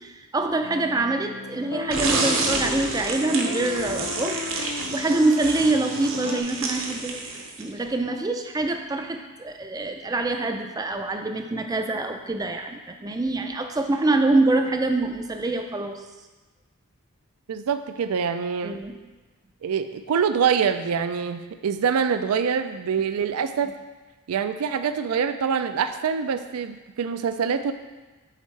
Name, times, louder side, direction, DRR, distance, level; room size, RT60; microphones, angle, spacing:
voice 1, 0.0-4.4 4.9-7.2 7.6-16.0 18.6-18.9, right 2 dB, 15° right, 5 dB, 0.3 m, -25 dB
sound 1, 0.6-6.4, left 4 dB, 75° left, 0.5 m, -35 dB
sound 2, 1.9-7.8, right 3 dB, 60° right, 0.8 m, -29 dB
voice 2, 17.5-18.8 19.6-23.7 24.3-27.7, right 6 dB, 85° right, 10 dB, 0.4 m, -25 dB
7.4 x 4.4 x 3.2 m, 1.2 s
head